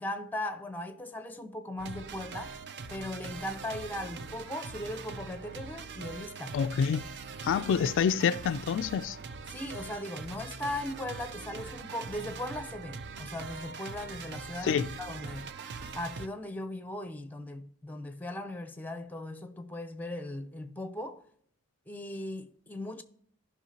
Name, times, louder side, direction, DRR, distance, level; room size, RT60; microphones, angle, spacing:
voice 1, 0.0-2.6 2.9-6.6 9.5-15.5 15.9-21.3 21.9-23.0, left 1 dB, 10° left, 0.6 m, -38 dB
sound 1, 1.8-16.3, right 4 dB, 50° right, 0.5 m, -42 dB
voice 2, 6.5-7.1 7.4-9.2 14.6-14.9, left 7 dB, 55° left, 0.3 m, -27 dB
15.0 x 5.6 x 2.8 m
head